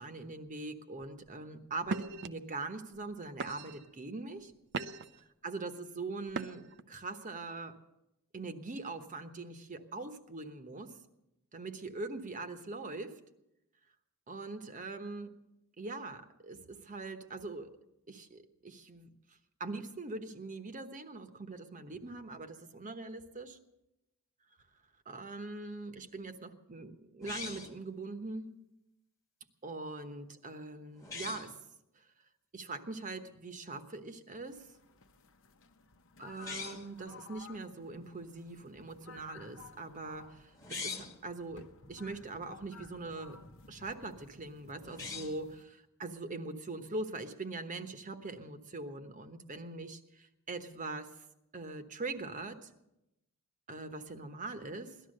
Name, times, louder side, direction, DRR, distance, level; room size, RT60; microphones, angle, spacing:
voice 1, 0.0-4.5 5.4-7.8 8.3-11.0 11.5-13.2 14.3-15.4 15.8-17.7 18.1-19.1 19.6-23.6 25.1-28.5 29.6-31.6 32.5-34.7 36.2-43.4 43.7-51.1 51.5-52.7 53.7-55.0, right 3 dB, 35° right, 8 dB, 1.1 m, -42 dB
sound 1, 1.0-1.3 1.8-2.3 2.9-3.1 3.4-3.9 4.4-5.2 6.3-6.8, right 4 dB, 50° right, 0.6 m, -39 dB
sound 2, 27.2-27.8 31.0-31.5 36.3-36.9 40.5-41.2 44.8-45.5, left 4 dB, 15° left, 1.4 m, -42 dB
sound 3, 34.4-45.6, left 4 dB, 60° left, 0.9 m, -56 dB
18.0 x 12.5 x 6.5 m, 0.90 s
head